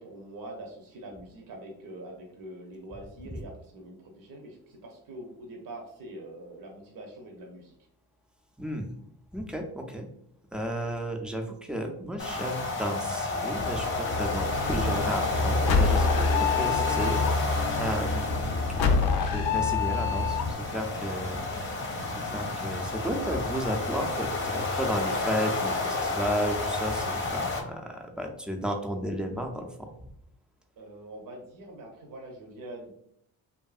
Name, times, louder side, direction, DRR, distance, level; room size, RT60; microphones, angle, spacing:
voice 1, 0.0-7.7 30.8-32.9, right 1 dB, 60° right, 1 dB, 0.7 m, -44 dB
voice 2, 8.6-8.9 9.3-10.1 10.5-21.8 22.3-29.9, equal, ahead, 3 dB, 0.4 m, -33 dB
sound 1, 12.2-27.6, left 3 dB, 30° left, 0.7 m, -31 dB
sound 2, 13.6-20.5, left 4 dB, 70° left, 0.5 m, -27 dB
sound 3, 14.2-27.0, right 4 dB, 90° right, 0.7 m, -48 dB
2.6 x 2.5 x 2.3 m, 0.69 s
supercardioid pair, 65°, 39 cm